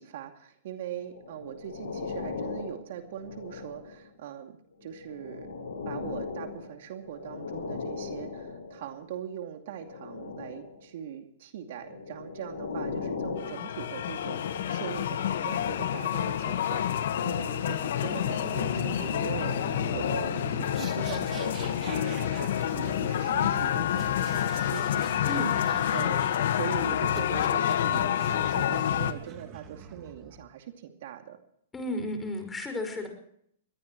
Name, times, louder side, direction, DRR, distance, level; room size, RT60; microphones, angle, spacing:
voice 1, 0.0-5.5 5.8-25.2 25.7-31.4, right 9 dB, 60° right, 5 dB, 2.5 m, -41 dB
sound 1, 1.0-4.1 4.8-9.0 9.7-10.8 11.7-15.0 15.7-15.9, left 4 dB, 90° left, 5.5 m, -38 dB
sound 2, 13.4-29.1, left 10 dB, 70° left, 1.4 m, -28 dB
sound 3, 17.7-30.4, right 7 dB, 30° right, 3.1 m, -44 dB
voice 2, 25.3-25.6 31.7-33.1, left 1 dB, 15° left, 6 dB, 5.2 m, -33 dB
22.5 x 19.0 x 3.1 m, 0.67 s
hypercardioid pair, 130°, 0 cm